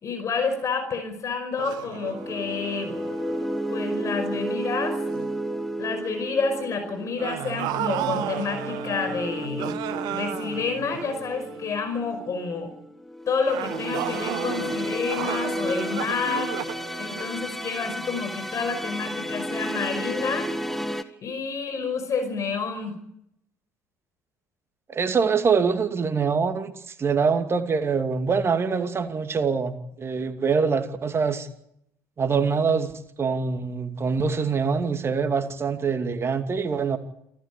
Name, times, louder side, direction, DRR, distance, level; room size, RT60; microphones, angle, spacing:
voice 1, 0.0-3.0 3.7-5.0 5.8-9.8 10.1-12.7 13.3-16.6 17.0-20.5 21.0-23.0, left 5 dB, 40° left, 7 dB, 5.2 m, -29 dB
sound 1, 1.6-4.7 5.1-5.4 7.2-11.8 13.4-18.0, right 13 dB, 60° right, 1.2 m, -34 dB
sound 2, 1.8-21.0, equal, 5° left, 1.7 m, -33 dB
voice 2, 24.9-31.5 32.2-32.9 33.2-37.0, right 5 dB, 35° right, 8 dB, 2.6 m, -24 dB
27.5 x 13.5 x 8.7 m, 0.76 s
figure-of-eight pair, 55°, 8 cm